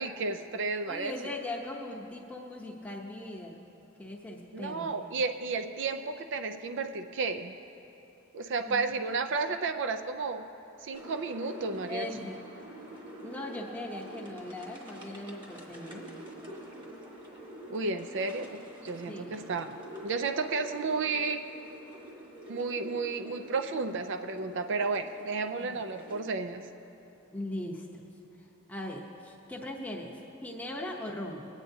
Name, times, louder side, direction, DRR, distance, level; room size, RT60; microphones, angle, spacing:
voice 1, 0.0-1.1 4.5-7.5 8.3-10.4 10.8-12.3 17.7-19.8 20.0-21.4 22.5-26.6, right 4 dB, 60° right, 8 dB, 0.5 m, -32 dB
voice 2, 0.9-3.6 4.0-5.0 8.7-9.0 11.9-12.4 13.2-16.1 19.1-19.5 25.6-25.8 27.3-28.0 28.7-31.5, left 1 dB, 5° left, -2 dB, 0.8 m, -39 dB
sound 1, 10.9-26.2, right 1 dB, 25° right, 1.2 m, -47 dB
22.0 x 8.9 x 2.7 m, 2.9 s
head